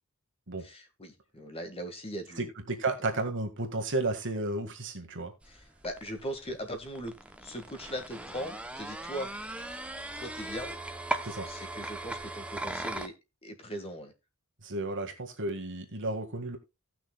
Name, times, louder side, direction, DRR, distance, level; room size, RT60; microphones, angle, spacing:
voice 1, 0.6-2.5 5.5-7.1 7.4-9.3 10.2-10.7 11.5-13.1 13.4-14.1, equal, 25° left, 1.8 m, -39 dB
voice 2, 2.4-5.3 11.2-11.5 14.6-16.6, right 2 dB, 60° right, 1.8 m, -33 dB
sound 1, 5.4-13.1, right 1 dB, 5° right, 0.8 m, -39 dB
18.0 x 6.2 x 2.3 m
head